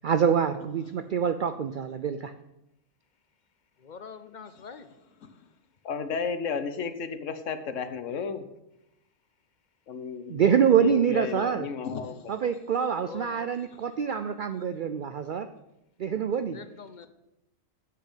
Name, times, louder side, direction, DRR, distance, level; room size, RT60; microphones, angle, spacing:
voice 1, 0.0-2.3 10.3-11.7 12.3-15.5 16.0-16.6, right 7 dB, 65° right, 10 dB, 0.5 m, -25 dB
voice 2, 3.8-4.9 13.0-13.5 16.5-17.1, left 6 dB, 50° left, 11 dB, 0.6 m, -44 dB
voice 3, 5.8-8.5 9.9-10.4 10.7-12.3, left 5 dB, 70° left, 10 dB, 1.2 m, -33 dB
7.7 x 6.8 x 8.0 m, 0.88 s
omnidirectional pair, 1.4 m